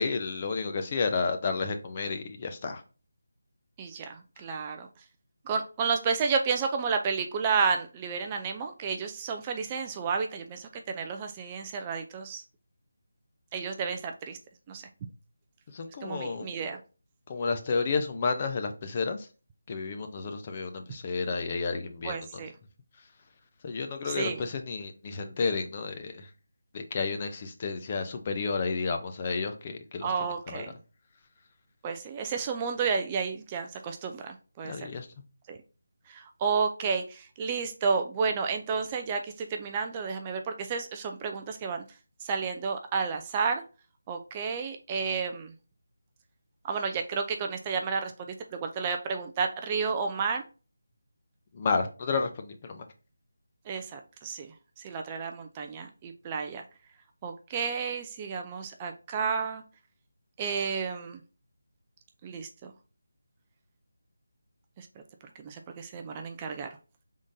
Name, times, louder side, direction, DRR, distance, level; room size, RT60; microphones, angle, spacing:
voice 1, 0.0-2.8 15.7-16.5 17.3-19.2 19.7-22.1 23.6-26.2 26.7-30.1 34.6-35.1 51.5-52.8, left 4 dB, 30° left, 0.5 m, -31 dB
voice 2, 3.8-4.9 5.5-12.4 13.5-14.4 14.7-14.8 16.0-16.8 22.0-22.5 24.0-24.4 30.0-30.7 31.8-34.9 35.5-35.6 36.1-41.8 42.2-43.6 44.1-45.5 46.6-50.4 53.7-56.6 57.2-59.6 60.4-61.2 62.2-62.7 64.8-64.9 65.4-66.7, right 5 dB, 20° right, 0.4 m, -31 dB
5.0 x 3.6 x 2.6 m
figure-of-eight pair, 165°, 0 cm